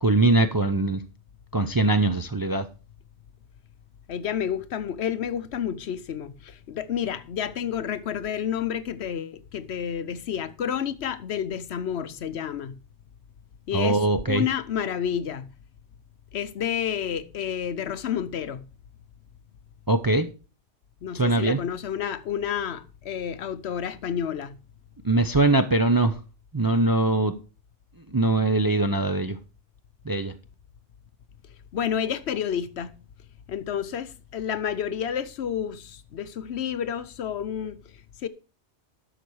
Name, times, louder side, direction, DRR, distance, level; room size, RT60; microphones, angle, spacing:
voice 1, 0.0-1.0 1.5-2.7 13.7-14.5 19.9-20.3 21.1-21.6 25.0-26.2 26.5-27.3 28.1-29.4 30.1-30.3, right 2 dB, 25° right, 0.5 m, -22 dB
voice 2, 4.1-12.8 13.7-15.5 16.3-18.7 21.0-24.6 31.7-33.0 33.5-38.3, left 8 dB, 65° left, 0.9 m, -30 dB
11.0 x 6.8 x 4.7 m
omnidirectional pair, 1.2 m